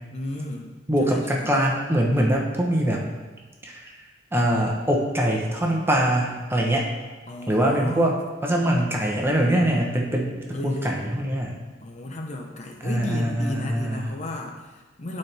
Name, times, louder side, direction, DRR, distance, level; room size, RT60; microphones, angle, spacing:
voice 1, 0.1-0.8 1.1-1.5 7.3-8.2 10.5-11.0 11.8-15.2, left 1 dB, 40° left, 1 dB, 0.8 m, -33 dB
voice 2, 0.9-3.0 3.6-3.9 4.3-6.9 7.5-8.2 8.4-11.6 12.8-14.1, right 1 dB, 15° right, -1 dB, 0.9 m, -23 dB
12.0 x 4.3 x 3.4 m, 1.3 s
head